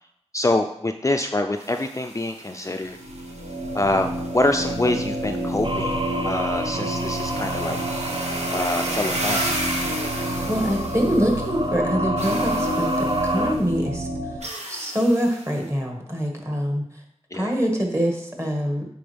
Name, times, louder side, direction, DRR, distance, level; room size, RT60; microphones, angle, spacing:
voice 1, 0.3-3.0 3.7-7.8 8.5-9.5 17.3-17.5, left 2 dB, 25° left, 5 dB, 0.4 m, -25 dB
Futuristic Drill Machine, 1.5-11.6 12.2-13.6 14.4-15.6, right 1 dB, 65° right, 1.3 m, -34 dB
sound 1, 2.9-14.4, equal, 80° right, 1.0 m, -29 dB
sound 2, 5.6-13.5, right 1 dB, 45° right, 0.7 m, -29 dB
voice 2, 10.5-14.1 14.7-16.8 17.3-18.9, equal, 25° right, 1 dB, 1.9 m, -24 dB
9.1 x 4.3 x 3.4 m, 0.75 s
cardioid pair, 40°, 12 cm